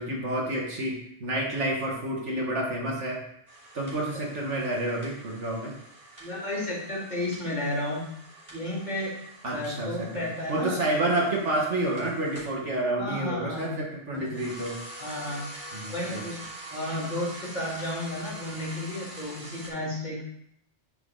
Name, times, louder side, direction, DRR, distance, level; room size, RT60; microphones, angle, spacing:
voice 1, 0.0-3.2 3.7-5.7 9.4-14.8 15.7-16.3, right 1 dB, 70° right, -2 dB, 2.0 m, -29 dB
sound 1, 3.5-12.6 14.1-19.7, right 1 dB, 30° right, 3.1 m, -45 dB
voice 2, 6.2-8.0 8.5-9.1 9.5-10.8 13.0-13.8 14.1-14.3 15.0-15.4 15.9-20.2, left 1 dB, 35° left, -6 dB, 2.8 m, -32 dB
10.0 x 4.8 x 3.8 m, 0.74 s
omnidirectional pair, 1.3 m